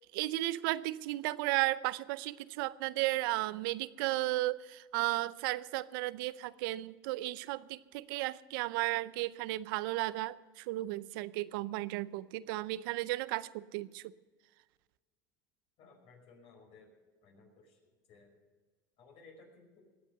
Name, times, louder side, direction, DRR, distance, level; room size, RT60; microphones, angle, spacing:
voice 1, 0.0-14.0, right 18 dB, 75° right, 18 dB, 0.6 m, -34 dB
voice 2, 15.8-16.9 17.2-17.8 18.1-18.3 19.0-19.8, left 4 dB, 55° left, 1 dB, 5.2 m, -58 dB
19.5 x 8.2 x 6.8 m, 1.3 s
supercardioid pair, 100°, 11 cm